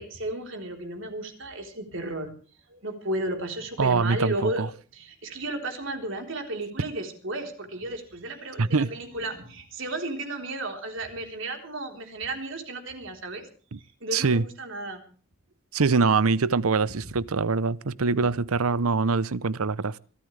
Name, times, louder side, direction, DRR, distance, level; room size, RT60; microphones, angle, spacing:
voice 1, 0.0-2.3 2.7-4.6 4.9-13.5 14.0-15.0 18.2-18.3, right 2 dB, 60° right, 3.9 m, -33 dB
voice 2, 3.8-4.7 8.6-8.9 13.7-13.8 14.1-14.4 15.7-20.0, right 4 dB, 85° right, 0.7 m, -24 dB
25.5 x 13.5 x 3.3 m
head